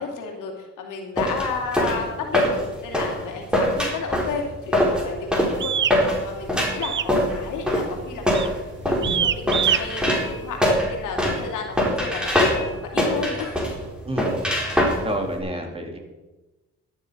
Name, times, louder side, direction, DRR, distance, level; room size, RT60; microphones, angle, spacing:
voice 1, 0.0-8.5 8.9-13.6, left 5 dB, 90° left, 2 dB, 2.7 m, -32 dB
sound 1, 1.2-15.4, equal, 5° right, 4.1 m, -23 dB
sound 2, 5.6-6.0 6.8-7.2 7.4-7.8 8.3-8.6 9.0-9.8, right 9 dB, 40° right, 0.6 m, -23 dB
voice 2, 14.0-14.4 15.0-16.0, right 1 dB, 20° right, 3 dB, 3.0 m, -28 dB
13.5 x 10.0 x 5.3 m, 1.1 s
cardioid pair, 90°, 30 cm